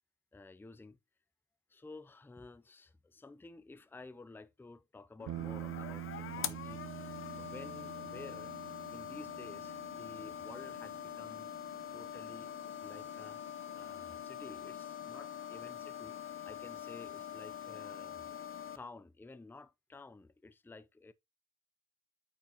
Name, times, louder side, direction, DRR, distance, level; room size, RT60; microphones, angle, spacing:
voice 1, 0.3-1.0 1.7-8.6 8.9-11.5 11.9-12.5 12.8-13.4 13.7-18.3 18.7-21.1, left 3 dB, 5° left, 0.5 m, -52 dB
sound 1, 5.2-18.8, left 9 dB, 45° left, 0.7 m, -44 dB
sound 2, 5.3-13.6, right 14 dB, 80° right, 1.1 m, -47 dB
8.8 x 4.6 x 2.8 m
cardioid pair, 90°, 30 cm